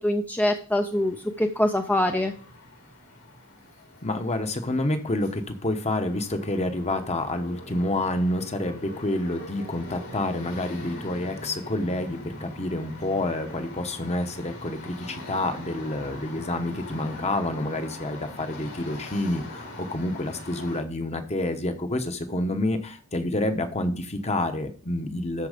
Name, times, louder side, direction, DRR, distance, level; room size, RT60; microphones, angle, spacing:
voice 1, 0.0-2.3, left 1 dB, 10° left, 5 dB, 0.5 m, -24 dB
sound 1, 0.9-20.8, left 1 dB, 80° left, 4.1 m, -42 dB
voice 2, 4.0-25.5, left 1 dB, 30° left, 7 dB, 1.1 m, -28 dB
13.0 x 4.7 x 5.1 m, 0.42 s
head